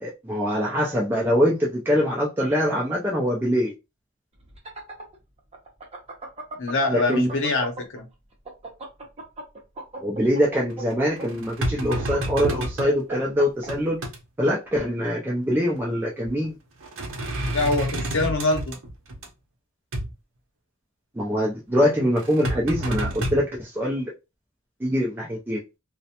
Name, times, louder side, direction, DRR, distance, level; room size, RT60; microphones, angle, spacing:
voice 1, 0.0-3.7 6.9-7.3 10.0-14.0 14.4-16.6 21.2-24.1 24.8-25.6, equal, 10° right, 0.4 m, -23 dB
sound 1, 4.4-8.0 8.3-13.7, right 2 dB, 30° right, 0.8 m, -37 dB
voice 2, 6.6-8.1 17.5-18.8, left 2 dB, 60° left, 0.7 m, -24 dB
sound 2, 10.7-12.9 13.4-14.2 15.7-15.8 16.2-16.5 16.8-19.3 19.9-20.1 22.2-23.4, right 1 dB, 65° right, 0.6 m, -29 dB
2.4 x 2.1 x 2.8 m
head